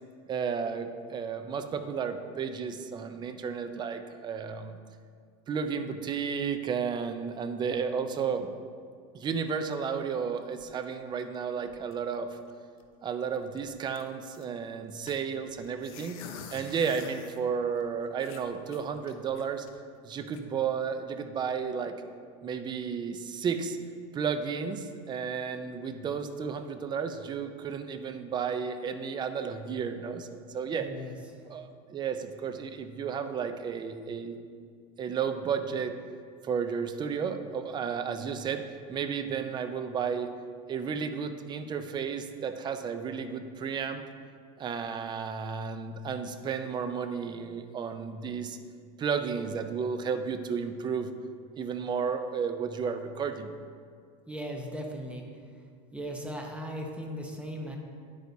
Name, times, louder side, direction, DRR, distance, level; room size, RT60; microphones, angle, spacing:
voice 1, 0.3-4.7 5.5-8.5 9.1-12.3 13.0-16.2 16.5-19.7 20.0-21.9 22.4-23.8 24.1-30.9 31.5-34.4 35.0-35.9 36.4-38.6 38.9-40.3 40.7-44.0 44.6-48.6 49.0-51.1 51.6-53.5, right 6 dB, 25° right, 9 dB, 0.5 m, -33 dB
sound 1, 10.0-11.4 11.7-12.2 12.5-12.6 12.8-13.0 13.3-14.5 15.1-17.4 17.8-17.9 18.2-19.7 20.1-20.4, left 6 dB, 80° left, 0.8 m, -48 dB
voice 2, 30.6-31.2 54.3-55.2 55.9-57.8, equal, 5° right, 1 dB, 0.9 m, -37 dB
9.7 x 8.1 x 2.7 m, 2.1 s
supercardioid pair, 130°, 18 cm